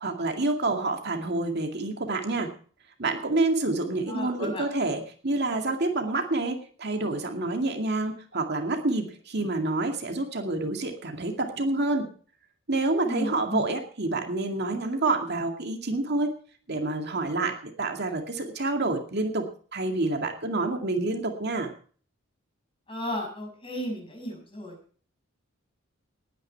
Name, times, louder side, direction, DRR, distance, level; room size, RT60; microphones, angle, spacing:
voice 1, 0.0-2.5 3.0-12.1 12.7-16.3 16.7-19.5 19.7-21.7, right 2 dB, 55° right, 3 dB, 2.2 m, -28 dB
voice 2, 4.1-4.6 13.0-13.7 22.9-24.7, equal, 25° left, 1 dB, 6.6 m, -34 dB
19.5 x 10.0 x 4.6 m, 0.44 s
head